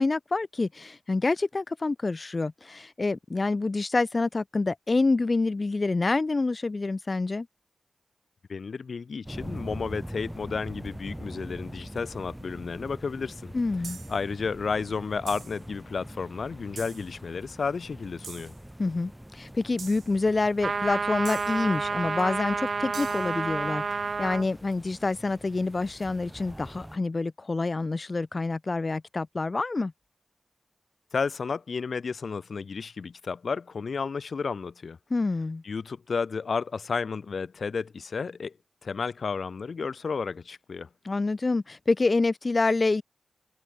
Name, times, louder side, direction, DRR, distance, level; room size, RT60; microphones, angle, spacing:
voice 1, 0.0-7.5 13.5-14.0 18.8-29.9 35.1-35.6 41.0-43.0, left 3 dB, 40° left, 1.2 m, -27 dB
voice 2, 8.5-13.5 14.1-18.5 31.1-35.0 35.6-38.6 38.8-40.9, left 5 dB, 70° left, 2.0 m, -32 dB
sound 1, 9.3-27.0, equal, 5° right, 1.5 m, -43 dB
sound 2, 13.8-14.2 15.3-15.6 16.8-17.1 18.2-18.6 19.8-20.1 21.2-21.6 22.9-23.3, right 6 dB, 85° right, 2.0 m, -43 dB
sound 3, 20.6-24.5, right 4 dB, 65° right, 0.4 m, -29 dB
wide cardioid pair, 70°, 0 cm